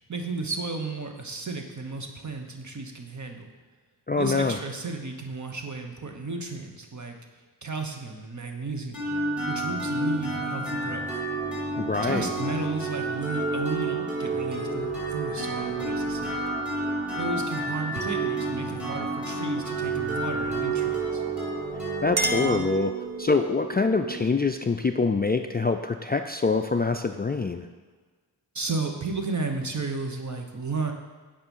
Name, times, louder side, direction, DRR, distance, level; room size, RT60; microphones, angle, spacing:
voice 1, 0.0-3.5 4.2-7.2 7.6-9.1 9.5-11.1 12.0-16.4 17.2-21.2 28.5-30.9, right 3 dB, 45° right, 4 dB, 1.2 m, -33 dB
voice 2, 4.1-4.6 11.8-12.3 22.0-22.9 23.2-27.7, left 4 dB, 25° left, 6 dB, 0.3 m, -25 dB
sound 1, 8.9-24.6, right 3 dB, 5° right, 2.9 m, -30 dB
Chink clink, 21.6-23.5, right 1 dB, 25° right, 0.8 m, -32 dB
8.8 x 5.1 x 5.5 m, 1.4 s
wide cardioid pair, 65°, 42 cm